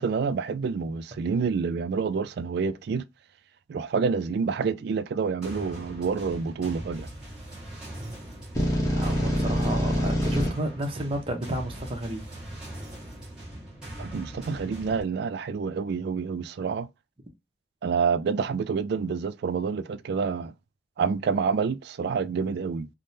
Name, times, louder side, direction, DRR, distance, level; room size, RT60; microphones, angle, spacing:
voice 1, 0.0-3.1 3.7-7.1 14.0-16.9 17.8-20.5 21.0-22.9, right 5 dB, 60° right, 0.3 m, -28 dB
sound 1, 5.4-15.0, right 1 dB, 5° right, 1.2 m, -41 dB
sound 2, 8.6-10.5, equal, 15° left, 0.8 m, -25 dB
voice 2, 8.9-12.2, right 1 dB, 30° right, 0.7 m, -32 dB
3.4 x 2.1 x 2.6 m
head